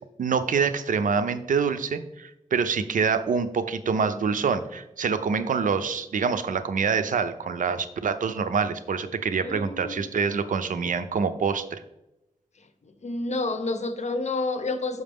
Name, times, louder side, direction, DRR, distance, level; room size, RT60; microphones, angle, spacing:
voice 1, 0.2-11.8, right 5 dB, 90° right, 11 dB, 0.5 m, -26 dB
voice 2, 9.4-10.1 12.8-15.0, left 3 dB, 60° left, 9 dB, 0.8 m, -29 dB
6.4 x 5.7 x 3.5 m, 0.90 s
cardioid pair, 65°, 13 cm